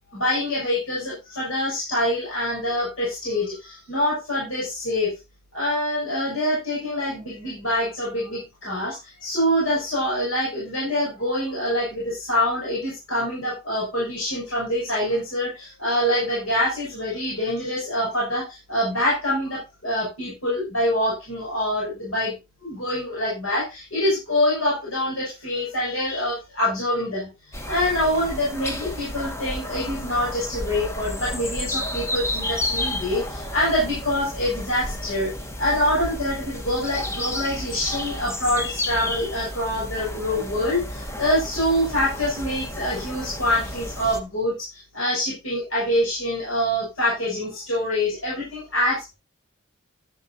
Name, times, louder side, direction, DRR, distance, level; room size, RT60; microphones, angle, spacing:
voice 1, 0.1-5.1 5.5-22.3 22.6-27.3 27.7-35.3 35.6-49.1, left 1 dB, 75° left, -6 dB, 6.5 m, -25 dB
sound 1, 27.5-44.2, left 1 dB, 15° left, 1.1 m, -32 dB
12.0 x 10.5 x 2.8 m, 0.24 s
head